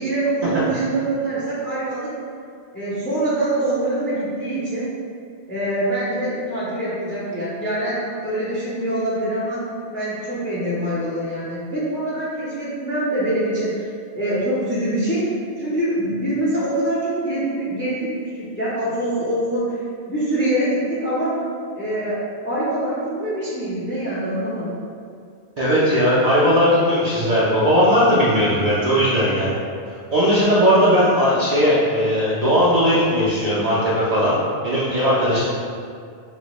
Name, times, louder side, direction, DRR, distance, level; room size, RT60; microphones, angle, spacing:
voice 1, 0.0-2.2 2.7-4.9 5.5-9.7 9.9-13.9 14.1-19.7 20.1-21.4 21.8-24.8, right 1 dB, 15° left, -8 dB, 0.4 m, -24 dB
voice 2, 25.6-29.5 30.1-34.3 34.6-35.4, equal, 50° right, -9 dB, 0.5 m, -18 dB
4.0 x 2.1 x 3.0 m, 2.2 s
omnidirectional pair, 1.1 m